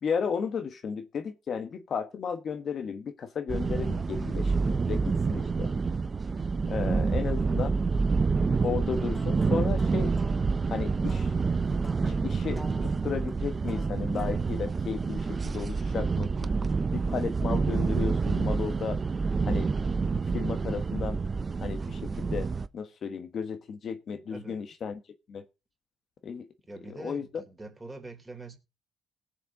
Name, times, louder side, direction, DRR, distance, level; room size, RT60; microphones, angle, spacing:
voice 1, 0.0-5.7 6.7-7.8 8.6-10.2 10.7-11.3 12.0-16.5 16.9-19.0 19.5-19.7 20.3-21.2 21.6-22.5 22.7-25.0 25.3-25.4 26.2-26.5 26.9-27.3, left 6 dB, 55° left, 1.1 m, -34 dB
sound 1, 3.5-22.7, right 4 dB, 35° right, 0.6 m, -28 dB
voice 2, 6.7-7.0 24.3-24.6 26.7-28.6, right 2 dB, 15° right, 3.4 m, -44 dB
sound 2, 8.9-14.4, left 1 dB, 10° left, 1.3 m, -49 dB
18.0 x 6.8 x 3.6 m
cardioid pair, 85°, 0 cm